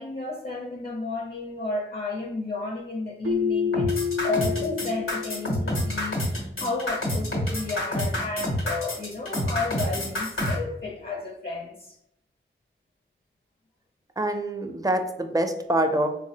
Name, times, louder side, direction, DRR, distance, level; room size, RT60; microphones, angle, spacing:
voice 1, 0.0-12.0, left 3 dB, 50° left, 1 dB, 0.5 m, -32 dB
Keyboard (musical), 3.2-6.0, left 6 dB, 85° right, 0.4 m, -29 dB
sound 1, 3.7-10.5, left 1 dB, 90° left, 0.9 m, -28 dB
voice 2, 14.2-16.1, right 1 dB, 15° right, 6 dB, 0.4 m, -25 dB
3.5 x 2.0 x 2.7 m, 0.82 s
cardioid pair, 40°, 21 cm